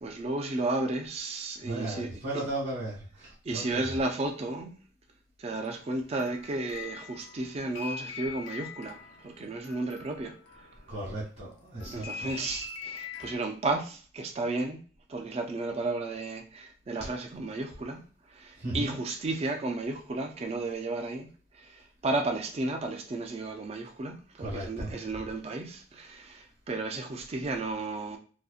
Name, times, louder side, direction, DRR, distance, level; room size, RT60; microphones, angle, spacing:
voice 1, 0.0-2.4 3.4-4.8 5.4-10.7 11.9-14.8 15.1-18.0 18.3-21.3 21.5-28.2, right 2 dB, 30° right, 0.3 m, -33 dB
voice 2, 1.6-4.0 10.9-12.3 18.6-19.0 24.4-24.9, right 1 dB, 60° right, 0.9 m, -36 dB
sound 1, 5.6-11.3 11.8-13.3, left 6 dB, 85° left, 0.5 m, -43 dB
2.6 x 2.1 x 2.4 m
head